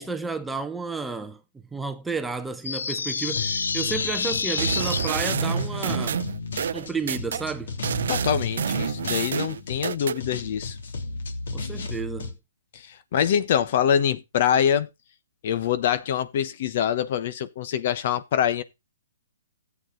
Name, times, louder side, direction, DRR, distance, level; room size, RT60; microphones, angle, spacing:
voice 1, 0.0-1.4 1.7-6.2 6.7-7.7 11.5-12.3, right 4 dB, 5° right, 0.8 m, -32 dB
sound 1, 2.6-5.1, left 5 dB, 85° left, 0.5 m, -28 dB
sound 2, 3.2-12.3, left 5 dB, 70° left, 2.9 m, -35 dB
sound 3, 4.6-7.4 7.8-10.2, right 8 dB, 65° right, 0.6 m, -28 dB
voice 2, 8.1-10.8 12.7-14.9 15.4-18.6, left 9 dB, 45° left, 1.1 m, -24 dB
14.0 x 8.3 x 3.9 m
hypercardioid pair, 155°, 0 cm